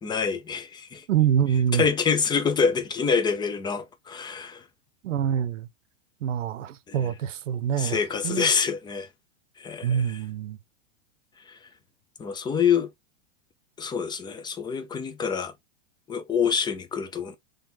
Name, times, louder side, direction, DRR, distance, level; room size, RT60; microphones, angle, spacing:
voice 1, 0.0-1.0 1.7-4.6 6.9-7.1 7.8-9.1 9.6-10.2 11.5-11.6 12.2-12.9 13.8-15.5 16.1-17.3, left 6 dB, 10° left, 0.6 m, -26 dB
voice 2, 1.1-1.8 5.0-5.7 6.2-8.0 8.2-8.5 9.8-10.6, right 9 dB, 85° right, 0.8 m, -25 dB
3.9 x 3.6 x 3.8 m
supercardioid pair, 135°, 36 cm